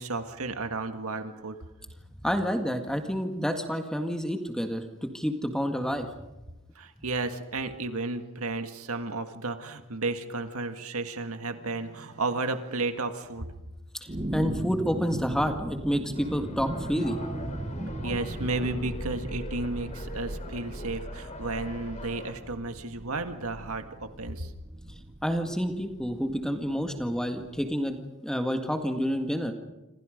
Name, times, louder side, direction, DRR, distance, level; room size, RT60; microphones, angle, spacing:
voice 1, 0.0-1.6 3.0-3.4 6.8-13.5 18.0-24.5, right 3 dB, 70° right, 7 dB, 1.8 m, -33 dB
voice 2, 2.2-6.1 14.0-17.2 25.2-29.5, equal, 5° left, 5 dB, 1.8 m, -29 dB
sound 1, 14.1-27.7, right 1 dB, 25° right, 0.8 m, -38 dB
sound 2, 16.1-22.3, left 1 dB, 30° left, 4.3 m, -44 dB
28.5 x 26.0 x 5.2 m, 1.0 s
head